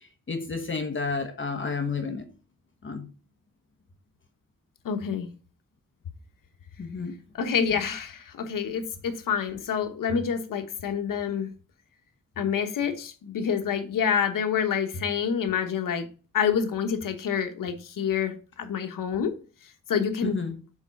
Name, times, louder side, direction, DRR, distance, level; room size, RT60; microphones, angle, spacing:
voice 1, 0.3-2.2 2.8-3.1 6.8-7.2 20.2-20.5, left 4 dB, 40° left, 1.2 m, -31 dB
voice 2, 4.8-5.3 7.4-11.5 12.4-16.1 16.3-19.3 19.9-20.4, left 7 dB, 85° left, 1.2 m, -27 dB
7.1 x 4.1 x 5.4 m
wide cardioid pair, 110°, 32 cm